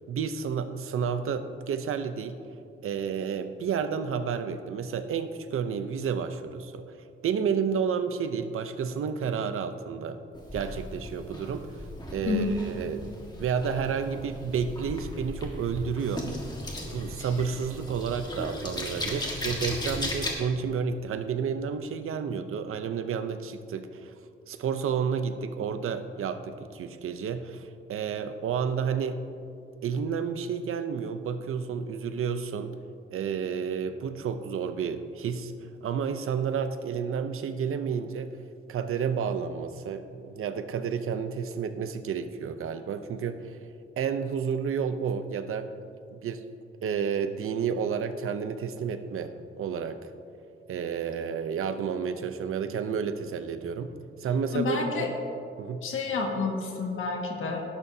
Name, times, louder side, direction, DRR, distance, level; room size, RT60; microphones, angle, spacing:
voice 1, 0.1-2.4 2.8-7.0 7.2-10.2 10.5-13.0 13.4-16.3 16.9-24.1 24.5-29.2 29.8-32.8 33.1-35.5 35.8-38.3 38.7-43.6 44.0-45.7 46.1-46.4 46.8-50.1 50.7-53.9 54.2-55.1 55.6-55.9, right 6 dB, 85° right, 10 dB, 0.7 m, -31 dB
sound 1, 10.3-20.3, left 1 dB, 20° left, 1.6 m, -36 dB
voice 2, 54.5-55.1 55.8-57.6, left 4 dB, 75° left, 1 dB, 1.8 m, -29 dB
18.0 x 11.5 x 2.8 m, 2.5 s
wide cardioid pair, 170°, 21 cm